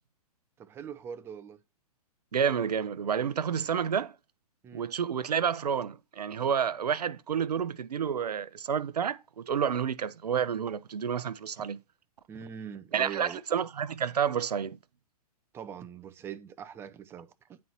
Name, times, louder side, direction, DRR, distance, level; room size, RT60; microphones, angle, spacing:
voice 1, 0.6-1.6 4.6-4.9 11.6-11.7 12.3-13.4 15.5-17.6, right 8 dB, 10° right, 0.4 m, -42 dB
voice 2, 2.3-4.1 4.7-11.8 12.9-14.8, right 7 dB, 85° right, 0.6 m, -29 dB
9.5 x 4.2 x 2.9 m
hypercardioid pair, 125°, 20 cm